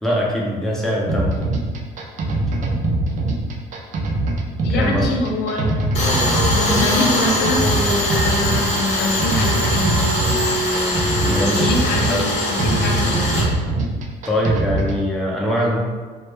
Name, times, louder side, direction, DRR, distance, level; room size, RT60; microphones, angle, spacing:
voice 1, 0.0-1.3 4.7-5.1 11.2-11.7 12.1-12.3 14.2-15.8, equal, ahead, -4 dB, 0.5 m, -22 dB
sound 1, 1.1-15.0, right 2 dB, 50° right, 0.4 m, -23 dB
voice 2, 4.6-5.8 6.5-10.0 11.4-13.3, left 2 dB, 85° left, 0 dB, 0.4 m, -25 dB
Tools, 5.9-13.4, left 1 dB, 40° left, 0.7 m, -21 dB
2.1 x 2.1 x 3.1 m, 1.4 s
cardioid pair, 110°, 17 cm